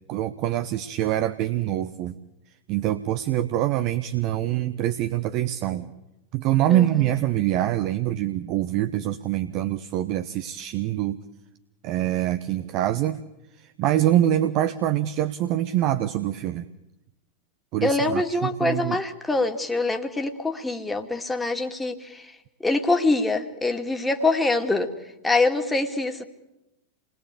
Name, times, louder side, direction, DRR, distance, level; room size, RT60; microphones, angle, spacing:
voice 1, 0.1-2.2 2.7-5.9 6.3-11.2 11.8-13.2 13.6-16.6 17.7-19.0, right 13 dB, 40° right, 10 dB, 1.1 m, -25 dB
voice 2, 17.8-22.3 22.6-24.9 25.2-26.2, left 2 dB, 5° left, 4 dB, 2.4 m, -24 dB
28.5 x 21.0 x 8.4 m, 0.94 s
figure-of-eight pair, 90°, 0 cm